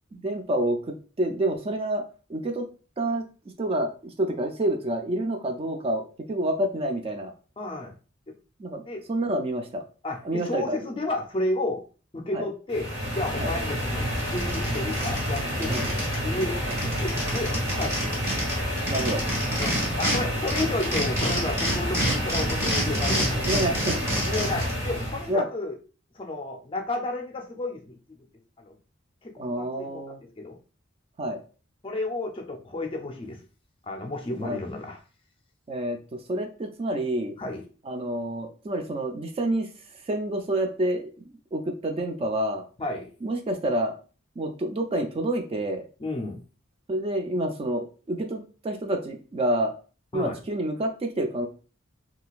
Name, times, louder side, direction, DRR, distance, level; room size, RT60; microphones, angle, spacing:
voice 1, 0.1-0.8 1.2-2.0 2.3-2.7 3.0-3.2 3.6-6.0 6.3-7.3 8.6-8.8 9.1-9.8 10.2-10.8 12.3-12.4 13.4-13.5 15.7-15.9 18.9-19.2 23.5-24.0 25.3-25.5 29.4-30.2 31.2-31.4 34.4-34.6 35.7-37.3 37.9-39.7 40.1-41.1 41.5-42.6 43.2-43.9 44.4-45.8 46.9-49.7 50.1-51.5, right 1 dB, 30° right, 5 dB, 0.3 m, -28 dB
voice 2, 7.6-7.9 8.9-9.0 10.0-11.8 12.1-12.9 13.1-16.0 16.2-16.6 17.0-18.4 19.6-23.5 24.3-25.8 26.1-28.0 28.6-28.8 29.2-30.6 31.8-33.4 33.8-35.0 37.4-37.6 42.8-43.1 46.0-46.4 50.1-50.4, left 2 dB, 25° left, 3 dB, 0.5 m, -32 dB
sound 1, 12.7-25.3, equal, 60° right, 1.1 m, -29 dB
sound 2, 13.8-13.9 14.2-16.2 16.4-16.5 16.7-20.2 20.5-24.7, equal, 15° right, 1.2 m, -28 dB
3.7 x 2.3 x 2.4 m, 0.36 s
head